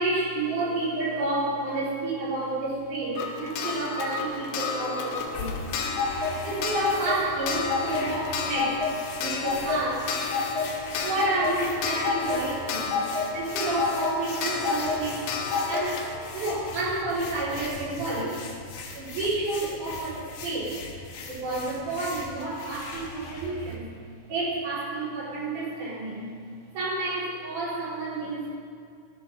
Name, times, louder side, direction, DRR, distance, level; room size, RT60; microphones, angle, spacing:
voice 1, 0.0-5.6 6.4-10.2 11.0-13.1 13.3-18.4 18.9-20.8 21.3-23.9 24.3-26.3 26.7-28.5, right 2 dB, 50° right, -8 dB, 5.7 m, -30 dB
Clock, 3.2-17.7 18.9-19.0 19.2-19.3, left 4 dB, 70° left, 2.7 m, -30 dB
sound 1, 5.1-23.8, left 3 dB, 85° left, 3.7 m, -41 dB
16.5 x 11.0 x 5.4 m, 2.2 s
omnidirectional pair, 4.7 m